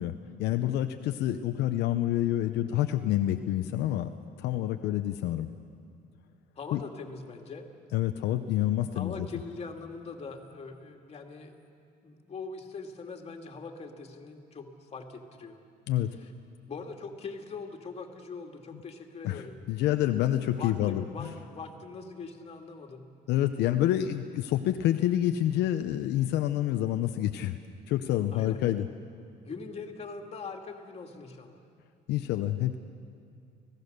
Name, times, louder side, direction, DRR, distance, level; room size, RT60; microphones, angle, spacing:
voice 1, 0.0-4.1 4.4-5.5 6.7-6.8 7.9-9.3 15.9-16.2 19.2-19.4 19.7-21.3 23.3-27.6 27.9-28.9 32.1-32.8, left 13 dB, 85° left, 7 dB, 0.8 m, -28 dB
voice 2, 6.6-7.7 8.9-11.6 12.0-15.6 16.2-16.3 16.7-19.6 20.5-23.1 28.3-28.6 29.5-31.6, left 4 dB, 35° left, 3 dB, 2.4 m, -42 dB
29.5 x 16.5 x 6.7 m, 2.4 s
cardioid pair, 110°, 17 cm